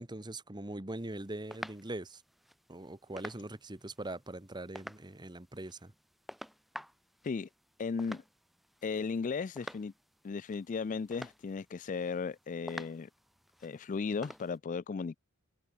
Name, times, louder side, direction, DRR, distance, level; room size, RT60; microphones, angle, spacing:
voice 1, 0.0-2.2 2.7-5.9, right 1 dB, 20° right, 1.3 m, -42 dB
sound 1, 1.0-14.6, equal, ahead, 2.3 m, -51 dB
voice 2, 7.8-8.2 8.8-9.9 10.2-13.1 13.6-15.2, left 5 dB, 35° left, 0.3 m, -36 dB
head